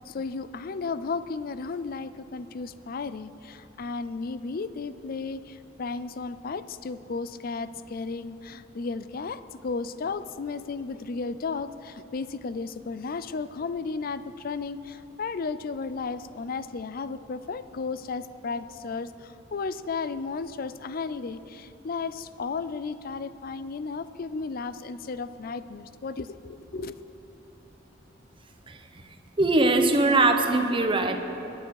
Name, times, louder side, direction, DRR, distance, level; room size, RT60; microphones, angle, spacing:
voice 1, 0.1-27.0, left 4 dB, 50° left, 14 dB, 0.4 m, -34 dB
voice 2, 29.4-31.2, right 2 dB, 25° right, 5 dB, 0.9 m, -21 dB
21.5 x 9.0 x 4.7 m, 3.0 s
head